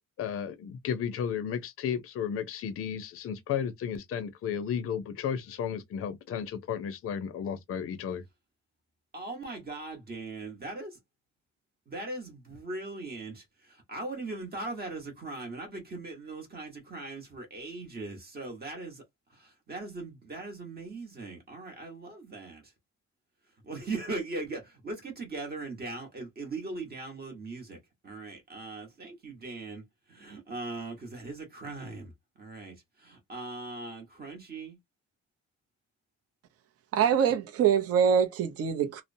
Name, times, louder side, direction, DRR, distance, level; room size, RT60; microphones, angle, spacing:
voice 1, 0.0-8.2, left 8 dB, 50° left, 0.5 m, -33 dB
voice 2, 9.1-11.0 11.9-19.0 19.3-22.6 23.6-27.8 28.0-29.8 30.1-32.1 32.4-34.8, right 3 dB, 30° right, 1.0 m, -39 dB
voice 3, 36.9-39.0, right 7 dB, 50° right, 0.6 m, -24 dB
2.7 x 2.0 x 2.6 m
cardioid pair, 160°, 31 cm